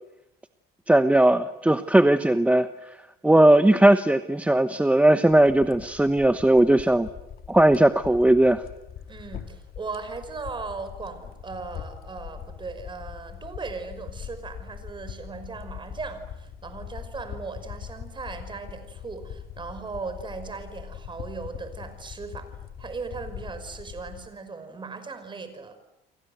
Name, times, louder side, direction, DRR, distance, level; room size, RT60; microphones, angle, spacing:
voice 1, 0.9-2.7 3.2-7.1 7.5-8.6, right 1 dB, 10° right, 10 dB, 1.0 m, -18 dB
sound 1, 5.3-24.3, left 8 dB, 60° left, 2.6 m, -42 dB
voice 2, 9.1-25.7, right 4 dB, 30° right, 10 dB, 5.5 m, -38 dB
30.0 x 24.5 x 8.1 m, 0.88 s
cardioid pair, 110°, 17 cm